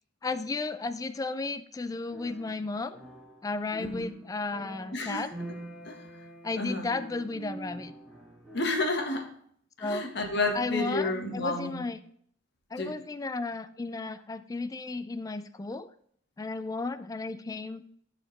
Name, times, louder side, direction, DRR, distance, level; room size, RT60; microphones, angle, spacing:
voice 1, 0.2-3.0 3.4-5.3 6.4-7.9 9.8-10.1 10.5-12.0 12.7-15.9 16.4-17.8, left 3 dB, 20° left, 12 dB, 0.3 m, -34 dB
sound 1, 2.1-9.0, right 2 dB, 5° right, 1.9 m, -45 dB
voice 2, 3.8-4.1 4.9-5.2 5.9-6.0 6.6-6.9 8.5-9.3 9.8-11.9 12.8-12.9, left 2 dB, 60° left, 3 dB, 1.4 m, -30 dB
13.5 x 4.8 x 3.2 m, 0.64 s
head